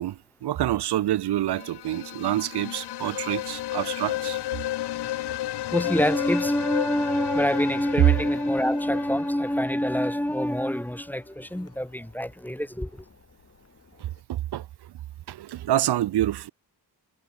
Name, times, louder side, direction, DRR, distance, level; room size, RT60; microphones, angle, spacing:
voice 1, 0.0-4.4 14.0-14.9 15.3-16.5, right 13 dB, 75° right, 0.6 m, -27 dB
sound 1, 1.4-10.2, left 14 dB, 75° left, 0.5 m, -33 dB
sound 2, 4.1-14.2, left 4 dB, 35° left, 5.9 m, -57 dB
voice 2, 5.7-12.9, equal, 5° left, 1.0 m, -26 dB
wide cardioid pair, 155°, 40 cm